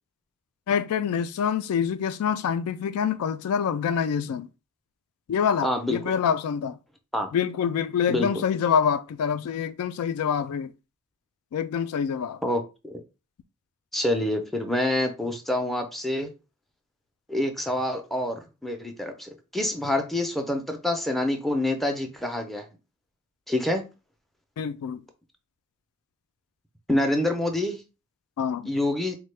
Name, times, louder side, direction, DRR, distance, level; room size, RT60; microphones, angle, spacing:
voice 1, 0.7-4.5 5.3-6.8 7.3-10.7 11.5-12.4 24.6-25.0 28.4-28.7, left 7 dB, 80° left, 0.3 m, -26 dB
voice 2, 5.6-6.0 7.1-7.3 8.1-8.4 12.4-13.0 13.9-16.3 17.3-22.6 23.5-23.8 26.9-27.8 28.7-29.1, left 1 dB, ahead, 0.4 m, -27 dB
3.5 x 2.1 x 3.2 m
head